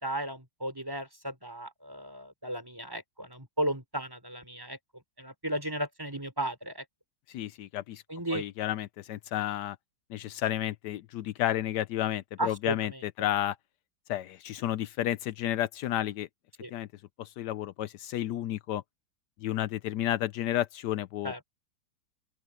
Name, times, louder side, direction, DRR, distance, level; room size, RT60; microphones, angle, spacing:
voice 1, 0.0-4.8 5.2-6.8 8.1-8.4 12.4-13.0 16.6-16.7 21.2-21.4, right 1 dB, 10° right, 3.7 m, -35 dB
voice 2, 7.3-8.0 8.3-9.8 10.1-13.6 14.1-16.3 16.7-16.9 17.2-18.8 19.4-21.4, left 12 dB, 80° left, 1.2 m, -31 dB
open air
omnidirectional pair, 1.8 m